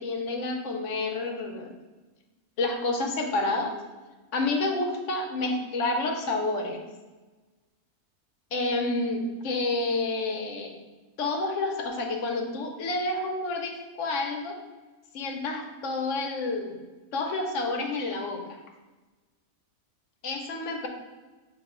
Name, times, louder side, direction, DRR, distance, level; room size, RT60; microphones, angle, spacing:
voice 1, 0.0-1.7 2.6-3.7 4.3-6.8 8.5-10.8 11.2-14.6 15.1-16.8 17.1-18.4 20.2-20.9, left 2 dB, 65° left, 2 dB, 0.9 m, -29 dB
5.6 x 2.6 x 3.6 m, 1.2 s
omnidirectional pair, 1.5 m